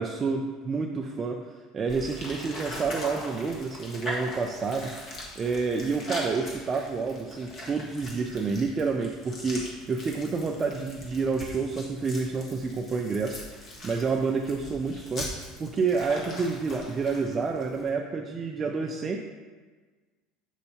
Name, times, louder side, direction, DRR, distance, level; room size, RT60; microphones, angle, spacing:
voice 1, 0.0-4.9 5.4-13.4 13.8-19.2, right 4 dB, 25° right, 2 dB, 0.4 m, -29 dB
sound 1, 1.9-17.9, equal, 35° left, 1.5 m, -40 dB
8.0 x 5.3 x 2.8 m, 1.4 s
cardioid pair, 150°, 0 cm